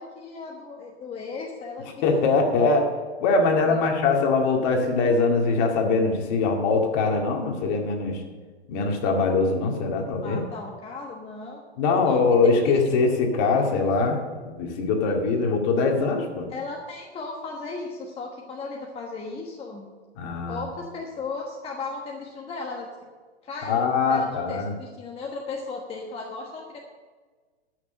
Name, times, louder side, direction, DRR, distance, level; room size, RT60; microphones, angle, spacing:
voice 1, 0.0-2.0 3.7-3.9 10.2-11.6 12.0-12.2 12.6-13.0 16.5-19.9 20.5-22.9 23.4-26.8, left 4 dB, 15° left, 0 dB, 1.3 m, -36 dB
voice 2, 2.0-2.9 3.2-8.2 8.7-10.4 11.8-14.2 14.5-16.5 20.2-20.6 23.7-24.7, left 4 dB, 40° left, 2 dB, 2.2 m, -22 dB
13.0 x 6.6 x 6.6 m, 1.4 s
hypercardioid pair, 120°, 34 cm